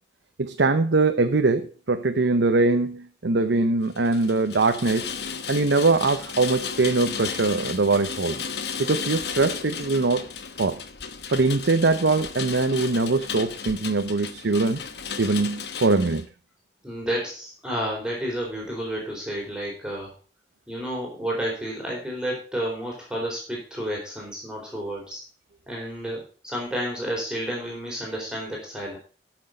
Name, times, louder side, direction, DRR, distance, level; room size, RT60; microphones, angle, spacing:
voice 1, 0.4-5.1 5.5-8.4 8.8-10.3 10.6-10.8 11.3-14.8 15.2-16.2, right 3 dB, 80° right, 7 dB, 0.7 m, -22 dB
Rain, 3.9-16.2, left 6 dB, 70° left, 1.0 m, -34 dB
voice 2, 16.8-20.1 20.7-25.2 25.7-29.0, equal, 5° right, -3 dB, 4.1 m, -31 dB
13.0 x 6.2 x 5.1 m, 0.38 s
head